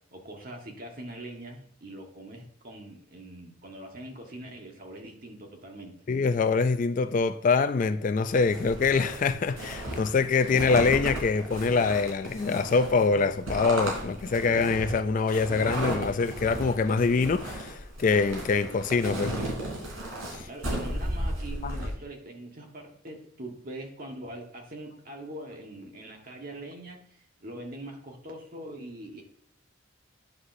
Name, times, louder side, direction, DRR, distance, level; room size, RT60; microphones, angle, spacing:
voice 1, 0.1-6.1 20.4-29.2, right 1 dB, 45° right, 1.5 m, -42 dB
voice 2, 6.1-19.4 20.3-20.5 21.6-21.7, left 4 dB, 40° left, 0.3 m, -25 dB
sound 1, 8.3-21.9, right 1 dB, 85° right, 3.4 m, -34 dB
9.6 x 6.0 x 2.6 m
head